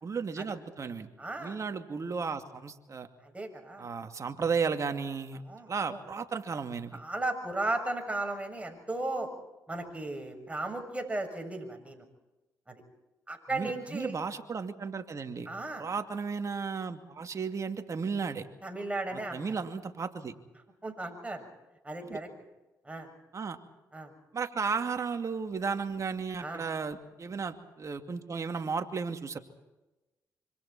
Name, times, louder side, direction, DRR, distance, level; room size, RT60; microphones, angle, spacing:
voice 1, 0.0-1.1 1.4-3.1 3.8-5.4 5.7-7.0 13.5-15.5 15.8-18.5 19.3-20.3 22.1-22.2 23.3-23.6 24.3-29.4, right 5 dB, 45° right, 6 dB, 2.5 m, -34 dB
voice 2, 1.2-1.6 3.2-3.9 5.5-6.0 6.9-9.3 9.7-12.0 12.7-12.8 13.3-14.2 15.5-15.8 18.6-19.4 20.8-21.5 21.8-22.3 22.8-23.1 23.9-24.1 26.4-26.6, right 2 dB, 15° right, 4 dB, 7.0 m, -35 dB
26.0 x 25.5 x 4.4 m, 1.0 s
supercardioid pair, 60°, 7 cm